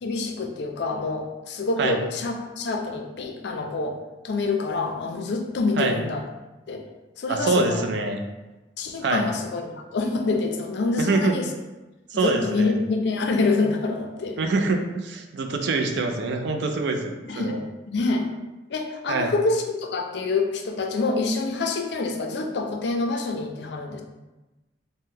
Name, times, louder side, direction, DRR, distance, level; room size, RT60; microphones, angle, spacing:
voice 1, 0.0-4.0 4.2-6.2 6.7-6.8 7.2-7.9 8.8-11.5 12.1-14.4 17.2-17.6 17.9-18.3 18.7-24.0, left 3 dB, 65° left, 3 dB, 0.4 m, -26 dB
voice 2, 7.3-8.2 9.0-9.3 11.0-11.4 12.1-12.8 14.4-17.6 19.1-19.3, right 3 dB, 65° right, 4 dB, 0.4 m, -25 dB
2.7 x 2.1 x 3.6 m, 1.1 s
head